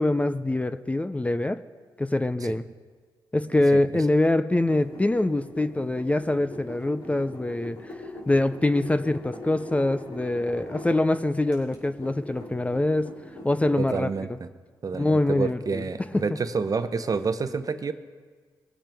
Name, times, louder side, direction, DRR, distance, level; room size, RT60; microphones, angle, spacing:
voice 1, 0.0-1.6 2.0-2.6 3.3-7.9 8.3-13.1 13.4-14.1 14.9-15.8 16.1-16.2, left 2 dB, 15° left, 11 dB, 0.5 m, -24 dB
sound 1, 4.6-11.1 11.5-14.0, left 2 dB, 65° left, 3.6 m, -41 dB
voice 2, 13.8-14.5 14.8-17.9, right 5 dB, 45° right, 10 dB, 0.8 m, -29 dB
20.0 x 8.9 x 3.5 m, 1.5 s
cardioid pair, 65°, 9 cm